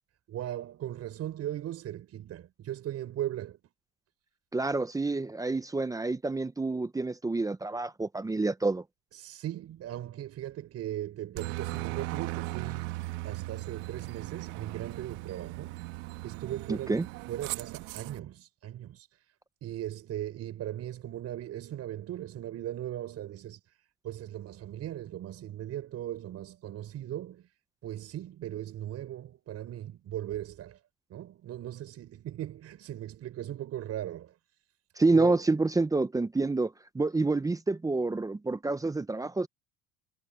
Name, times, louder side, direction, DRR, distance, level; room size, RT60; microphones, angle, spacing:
voice 1, 0.3-3.6 9.1-13.0 13.2-15.8 16.2-19.2 19.6-23.8 24.0-27.5 27.8-30.8 31.1-34.4 35.1-35.4, right 12 dB, 50° right, 6.0 m, -38 dB
voice 2, 4.5-8.8 16.7-17.0 35.0-39.5, right 3 dB, 10° right, 0.8 m, -28 dB
Aircraft, 11.4-18.2, right 20 dB, 90° right, 1.7 m, -38 dB
cardioid pair, 130°, 33 cm